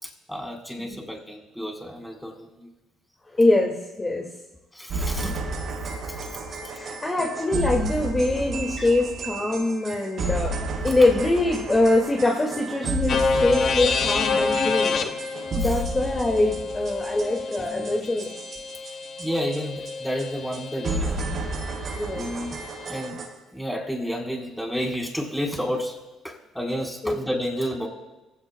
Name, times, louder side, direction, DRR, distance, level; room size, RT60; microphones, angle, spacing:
voice 1, 0.0-2.7 4.7-5.4 6.1-6.2 8.8-8.9 13.1-13.2 15.5-15.8 19.2-21.4 22.1-22.6 22.9-23.2 23.5-26.0 26.2-27.9, equal, 5° left, 0 dB, 4.4 m, -31 dB
voice 2, 3.3-4.2 6.7-10.6 10.8-15.0 15.6-18.3 21.9-22.3 27.0-27.2, left 2 dB, 25° left, 0 dB, 2.2 m, -23 dB
sound 1, 4.9-19.6 19.8-19.9 20.2-20.3 20.5-20.6 20.8-23.2, right 2 dB, 55° right, 4.6 m, -32 dB
sound 2, 13.1-21.0, left 5 dB, 55° left, 1.1 m, -28 dB
23.0 x 16.0 x 2.3 m, 1.0 s
hypercardioid pair, 55°, 0 cm